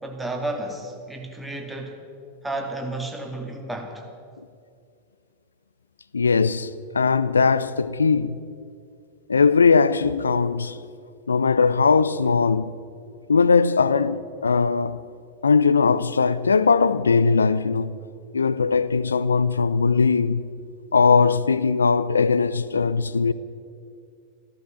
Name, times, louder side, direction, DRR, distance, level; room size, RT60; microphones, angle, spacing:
voice 1, 0.0-2.0 2.4-4.1, right 2 dB, 5° right, 2.3 m, -32 dB
voice 2, 6.1-8.4 9.3-10.8 11.3-12.7 13.3-15.0 15.4-18.0 18.3-20.4 20.9-23.3, left 5 dB, 75° left, 0.5 m, -20 dB
15.0 x 13.5 x 7.2 m
figure-of-eight pair, 90°, 0 cm